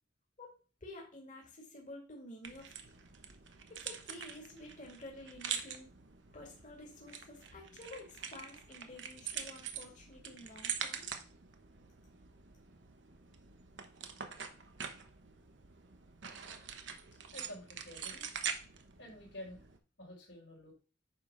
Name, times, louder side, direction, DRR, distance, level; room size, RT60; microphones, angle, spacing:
voice 1, 0.8-2.7 3.7-5.9 6.3-11.2, left 1 dB, 45° left, -1 dB, 2.3 m, -51 dB
sound 1, 2.4-19.8, right 7 dB, 80° right, 1.1 m, -45 dB
voice 2, 17.3-18.2 19.0-19.7 20.0-20.7, left 1 dB, 80° left, -3 dB, 4.5 m, -49 dB
9.5 x 3.6 x 6.1 m, 0.37 s
head